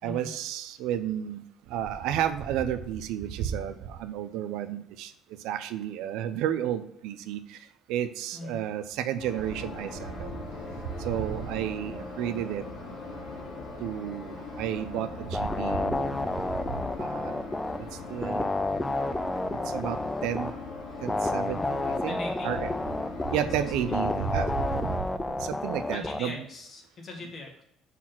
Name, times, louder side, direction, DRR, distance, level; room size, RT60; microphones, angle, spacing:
voice 1, 0.0-1.4 1.7-5.1 5.4-7.4 7.9-10.3 11.0-12.6 13.8-16.1 17.0-17.3 18.1-18.5 19.7-20.5 21.0-22.2 22.4-22.7 23.3-25.0 25.3-26.4, right 10 dB, 90° right, 11 dB, 0.6 m, -31 dB
sound 1, 9.2-25.0, left 3 dB, 60° left, 2.4 m, -39 dB
sound 2, 15.3-17.8 18.2-20.5 21.1-23.4 23.9-26.2, left 2 dB, 10° left, 0.3 m, -30 dB
voice 2, 22.1-22.5 23.3-23.5 25.9-27.6, left 2 dB, 35° left, 1 dB, 1.7 m, -40 dB
6.1 x 4.2 x 6.0 m, 0.75 s
cardioid pair, 150°, 0 cm